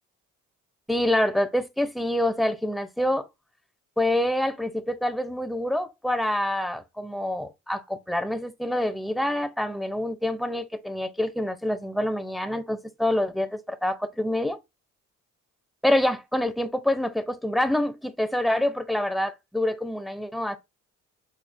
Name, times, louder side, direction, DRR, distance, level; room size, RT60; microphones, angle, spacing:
voice 1, 0.9-3.2 4.0-14.6 15.8-20.6, left 1 dB, ahead, 0.8 m, -26 dB
6.3 x 3.2 x 2.2 m
cardioid pair, 90°, 30 cm